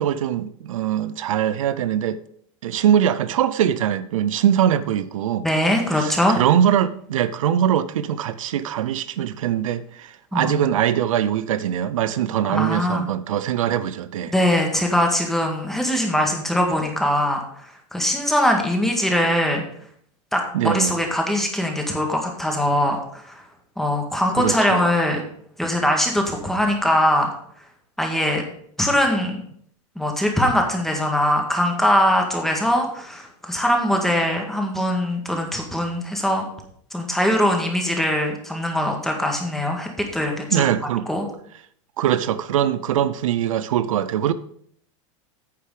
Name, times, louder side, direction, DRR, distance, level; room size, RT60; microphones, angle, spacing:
voice 1, 0.0-2.2 2.6-5.5 5.9-14.3 20.5-20.9 24.4-24.9 40.5-41.1 42.0-44.3, right 10 dB, 90° right, 0.6 m, -22 dB
voice 2, 5.4-6.4 10.3-10.6 12.5-13.1 14.3-19.6 20.3-23.4 23.8-25.2 25.6-27.3 28.0-28.4 28.8-29.4 30.0-36.4 36.9-40.7 41.1-41.3, left 1 dB, ahead, 1.9 m, -22 dB
9.6 x 6.7 x 5.0 m
supercardioid pair, 130°, 17 cm